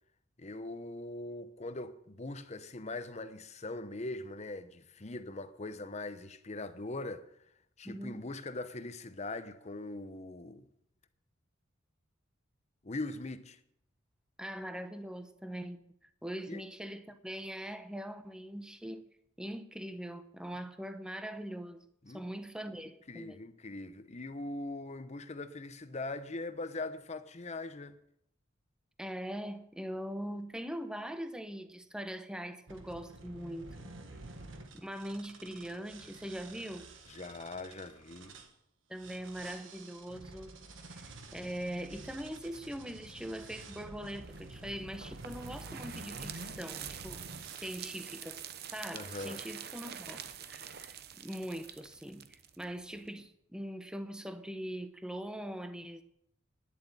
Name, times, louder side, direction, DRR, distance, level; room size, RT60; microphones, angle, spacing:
voice 1, 0.4-7.3 7.8-10.7 12.8-13.6 16.5-16.6 22.0-22.2 23.1-28.0 37.1-38.3 48.9-49.4, left 2 dB, 35° left, 0.8 m, -41 dB
voice 2, 7.8-8.2 14.4-15.8 16.2-19.1 19.4-21.8 22.1-23.4 29.0-33.9 34.7-36.9 38.9-40.6 40.9-47.2 47.6-48.4 48.7-56.0, equal, 5° right, 0.8 m, -42 dB
sound 1, 32.7-38.5 39.0-47.7 48.4-48.7 49.1-49.3, right 2 dB, 70° right, 1.5 m, -50 dB
sound 2, 44.3-53.1, right 9 dB, 50° right, 0.8 m, -46 dB
10.5 x 7.9 x 8.8 m
head